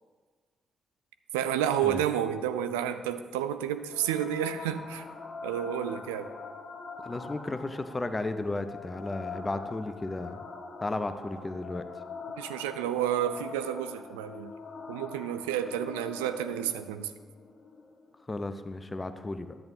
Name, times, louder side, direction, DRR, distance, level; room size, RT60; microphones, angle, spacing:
voice 1, 1.3-5.0 5.4-6.3 12.4-14.5 14.9-17.1, right 10 dB, 75° right, 10 dB, 0.3 m, -30 dB
sound 1, 3.9-18.9, left 4 dB, 50° left, 1.2 m, -44 dB
voice 2, 7.0-10.4 10.8-11.9 18.3-19.6, left 2 dB, 25° left, 10 dB, 0.6 m, -34 dB
10.5 x 8.5 x 2.7 m, 1.5 s
figure-of-eight pair, 40°, 0 cm